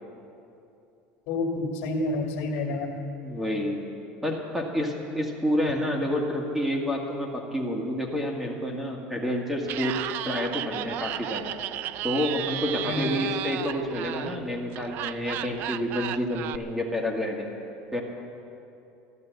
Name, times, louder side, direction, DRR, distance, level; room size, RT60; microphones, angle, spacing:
voice 1, 1.3-3.0 12.8-13.0, left 2 dB, 60° left, -2 dB, 2.5 m, -29 dB
voice 2, 3.2-3.8 4.2-11.5 12.0-17.5 17.9-18.0, left 1 dB, 5° right, 0 dB, 2.0 m, -29 dB
Laughter, 9.6-16.6, right 12 dB, 50° right, 0.4 m, -34 dB
14.0 x 11.5 x 7.9 m, 2.8 s
cardioid pair, 145°, 4 cm